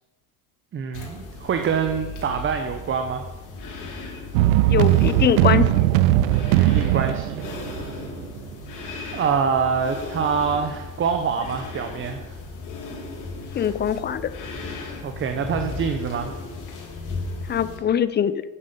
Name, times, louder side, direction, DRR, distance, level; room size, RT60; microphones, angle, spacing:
voice 1, 0.7-3.2 6.6-8.0 9.1-12.3 15.0-16.3, right 6 dB, 30° right, 6 dB, 0.9 m, -25 dB
sound 1, 0.9-17.8, left 3 dB, 45° left, 3.4 m, -36 dB
sound 2, 4.3-8.4, right 15 dB, 75° right, 0.6 m, -19 dB
voice 2, 4.7-5.8 13.5-14.3 17.5-18.4, left 8 dB, 25° left, 15 dB, 0.6 m, -22 dB
9.8 x 7.4 x 6.7 m, 1.2 s
supercardioid pair, 100°, 42 cm